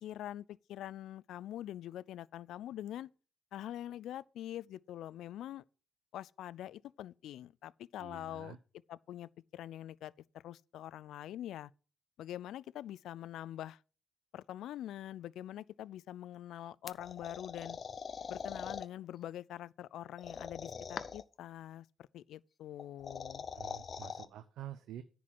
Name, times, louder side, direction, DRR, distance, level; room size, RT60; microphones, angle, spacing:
voice 1, 0.0-3.1 3.5-5.6 6.1-8.6 8.9-10.1 10.4-11.7 12.2-13.8 14.3-17.8 18.3-21.9 22.1-23.4, left 12 dB, 80° left, 0.4 m, -44 dB
voice 2, 8.0-8.6 23.5-25.0, right 11 dB, 80° right, 0.7 m, -48 dB
sound 1, 16.9-18.9 20.2-21.3 22.8-24.3, left 6 dB, 45° left, 0.7 m, -43 dB
10.0 x 4.7 x 7.5 m
cardioid pair, 90°, 0 cm